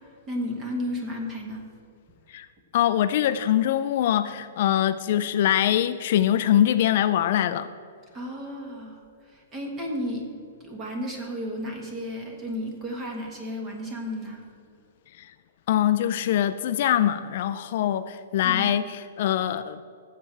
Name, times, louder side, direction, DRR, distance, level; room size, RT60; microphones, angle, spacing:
voice 1, 0.3-1.7 8.1-10.2 10.6-14.5 18.4-18.7, equal, 15° right, 1 dB, 1.3 m, -33 dB
voice 2, 2.7-7.7 15.2-15.3 15.7-19.8, left 11 dB, 45° left, 12 dB, 0.3 m, -23 dB
15.5 x 7.6 x 3.3 m, 2.5 s
hypercardioid pair, 170°, 0 cm